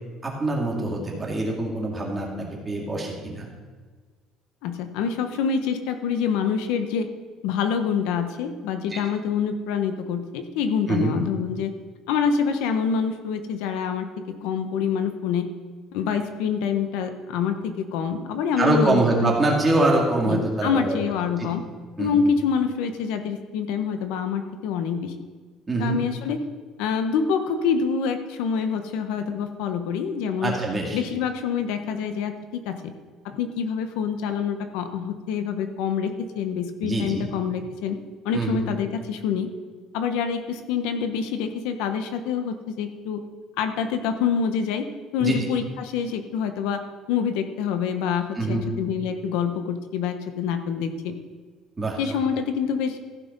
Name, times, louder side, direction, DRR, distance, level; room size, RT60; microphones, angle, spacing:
voice 1, 0.2-3.5 8.9-9.0 10.9-11.2 18.6-21.0 21.4-21.5 22.0-22.2 25.7-26.0 30.4-31.0 36.8-37.3 38.3-38.6 45.2-45.4 48.4-48.7 51.8-52.2, right 2 dB, 15° right, -2 dB, 2.2 m, -24 dB
voice 2, 4.6-7.1 7.4-11.7 12.1-14.1 14.4-15.5 15.9-19.6 20.2-21.6 22.0-25.2 25.8-26.4 26.8-30.5 30.9-32.9 33.2-38.0 38.2-39.5 39.9-43.2 43.6-44.9 45.1-46.8 47.1-51.1 52.0-53.0, left 6 dB, 85° left, 8 dB, 1.0 m, -26 dB
14.5 x 6.0 x 5.4 m, 1.5 s
cardioid pair, 155°, 0 cm